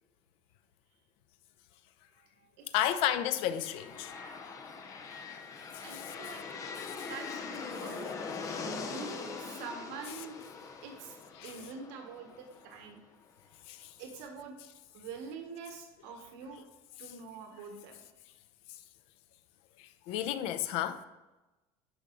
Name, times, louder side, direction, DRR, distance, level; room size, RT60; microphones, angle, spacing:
voice 1, 2.2-2.8 3.1-3.4 5.8-6.4 7.0-8.1 8.5-10.4 10.8-11.2 11.4-13.0 14.0-14.5 14.9-16.6 17.0-18.0, right 5 dB, 80° right, 1.4 m, -45 dB
voice 2, 2.7-4.1 5.9-6.3 7.0-7.1 11.4-11.5 13.7-13.9 19.8-21.0, left 11 dB, 65° left, 0.7 m, -32 dB
sound 1, 3.4-13.2, left 5 dB, 30° left, 0.8 m, -42 dB
10.5 x 6.1 x 3.9 m
cardioid pair, 160°, 11 cm